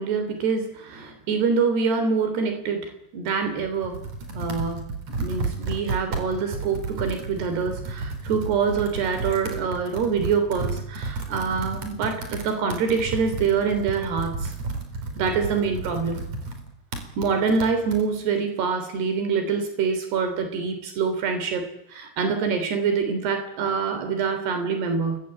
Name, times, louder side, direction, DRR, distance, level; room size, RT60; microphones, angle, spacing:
voice 1, 0.0-4.0 4.4-4.9 5.2-14.5 15.2-16.2 17.2-25.2, right 5 dB, 85° right, 7 dB, 5.3 m, -25 dB
Computer keyboard, 3.4-18.0, right 3 dB, 45° right, 4.9 m, -32 dB
29.5 x 22.0 x 8.6 m, 0.78 s
omnidirectional pair, 4.6 m